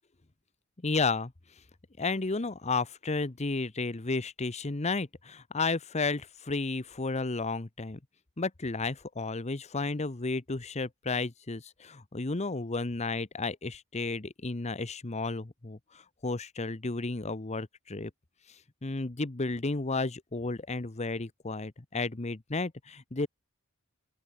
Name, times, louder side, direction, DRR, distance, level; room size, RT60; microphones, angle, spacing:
voice 1, 0.8-1.3 2.0-8.0 8.4-18.1 18.8-23.3, left 3 dB, 30° left, 0.9 m, -32 dB
open air
head